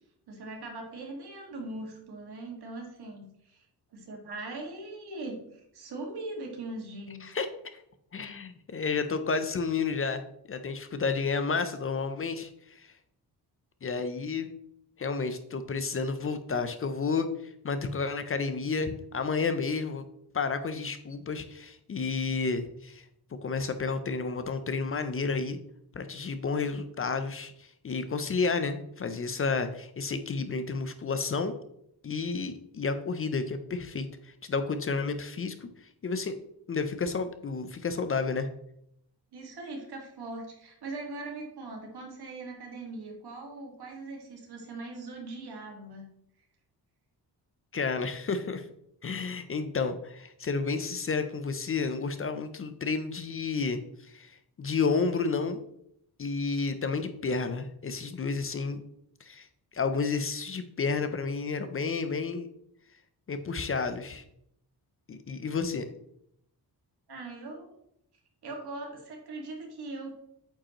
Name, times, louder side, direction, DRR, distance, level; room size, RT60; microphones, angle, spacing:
voice 1, 0.3-3.6 3.9-7.4 39.3-46.1 67.1-67.7 68.4-70.2, right 2 dB, 75° right, 1 dB, 1.9 m, -40 dB
voice 2, 8.1-10.2 10.5-12.9 13.8-14.5 15.0-20.0 20.3-23.0 23.4-25.6 25.9-31.5 32.0-35.7 36.0-36.4 36.7-38.5 47.7-48.7 49.0-53.8 54.1-55.6 56.2-58.8 59.2-59.5 59.7-62.5 63.3-64.2 65.1-65.9, left 4 dB, 35° left, 9 dB, 0.6 m, -31 dB
8.5 x 5.1 x 3.0 m, 0.74 s
cardioid pair, 120°, 39 cm